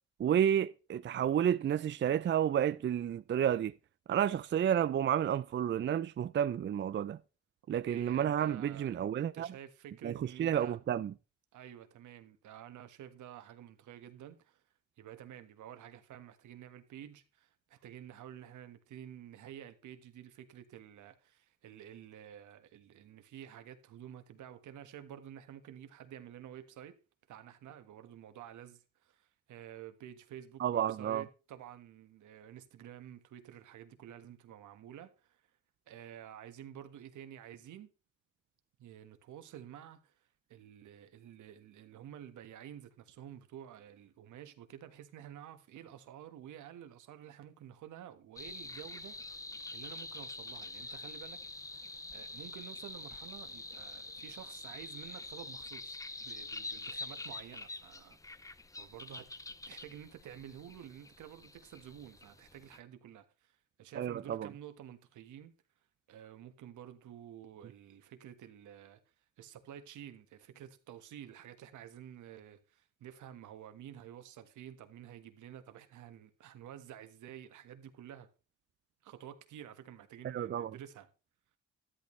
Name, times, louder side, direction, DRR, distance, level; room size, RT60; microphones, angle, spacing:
voice 1, 0.2-3.7 4.1-7.2 7.7-9.5 10.0-11.1 30.6-31.2 63.9-64.5 80.2-80.7, right 9 dB, 40° right, 0.5 m, -31 dB
voice 2, 7.9-10.7 11.5-14.6 15.0-27.0 27.3-35.4 35.9-37.9 38.8-40.1 40.5-49.2 49.7-56.0 56.2-58.2 58.8-59.3 59.7-65.5 66.1-69.0 69.4-78.3 79.0-81.1, right 10 dB, 75° right, 1.5 m, -50 dB
sound 1, 48.4-62.8, left 2 dB, 10° left, 0.6 m, -46 dB
13.0 x 11.0 x 3.2 m
cardioid pair, 90°, 30 cm